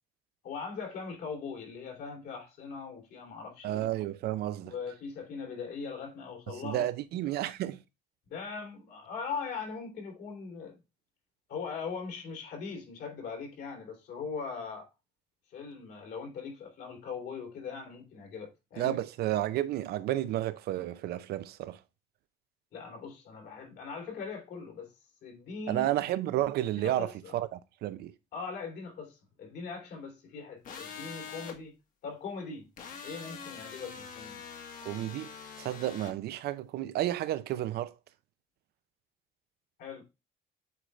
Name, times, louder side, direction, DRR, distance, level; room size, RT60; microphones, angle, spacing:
voice 1, 0.4-3.9 4.6-6.9 8.3-10.8 11.5-14.9 15.5-19.0 22.7-24.9 25.2-25.9 26.7-27.3 28.3-31.7 32.0-32.7 33.0-34.4 39.8-40.0, left 5 dB, 70° left, 2.9 m, -40 dB
voice 2, 3.6-4.7 6.5-7.8 18.8-21.8 25.7-28.1 34.8-37.9, right 14 dB, 70° right, 0.6 m, -32 dB
sound 1, 30.6-31.6 32.8-36.1, left 6 dB, 55° left, 1.4 m, -44 dB
8.1 x 3.8 x 3.1 m
cardioid pair, 110°, 17 cm